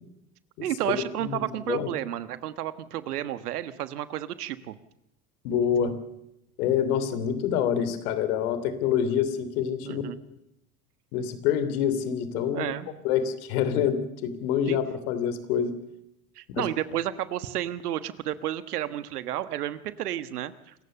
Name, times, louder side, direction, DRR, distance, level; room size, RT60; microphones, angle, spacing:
voice 1, 0.6-4.8 9.8-10.2 12.5-12.9 14.7-14.8 16.3-20.7, right 12 dB, 85° right, 14 dB, 1.5 m, -31 dB
voice 2, 5.4-5.9 6.6-10.0 11.1-12.7 13.0-15.7 16.5-16.6, left 8 dB, 70° left, 12 dB, 3.2 m, -26 dB
26.5 x 15.0 x 6.8 m, 0.83 s
hypercardioid pair, 85°, 45 cm